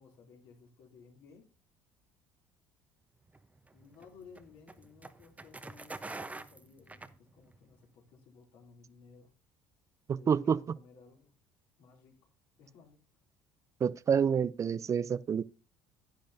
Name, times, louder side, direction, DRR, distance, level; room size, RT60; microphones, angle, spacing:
voice 1, 0.0-1.5 3.7-9.3 10.1-11.4 11.8-12.3 12.6-13.0, left 5 dB, 70° left, 3.0 m, -57 dB
sound 1, 3.3-7.7, right 3 dB, 15° right, 0.9 m, -46 dB
voice 2, 10.1-10.6 13.8-15.4, right 7 dB, 35° right, 0.5 m, -28 dB
10.5 x 10.5 x 2.7 m
hypercardioid pair, 70°, 9 cm